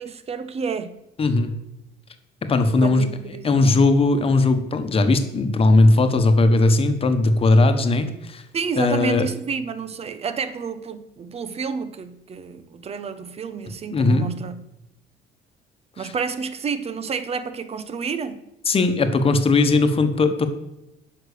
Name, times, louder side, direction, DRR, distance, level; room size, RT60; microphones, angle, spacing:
voice 1, 0.0-1.0 2.7-3.9 8.5-14.7 16.0-18.4, right 5 dB, 35° right, 0.9 m, -30 dB
voice 2, 1.2-1.5 2.4-3.1 3.4-8.4 8.8-9.3 13.9-14.3 16.0-16.1 18.7-20.5, left 2 dB, 35° left, 1.2 m, -18 dB
9.9 x 5.8 x 6.8 m
cardioid pair, 110°, 17 cm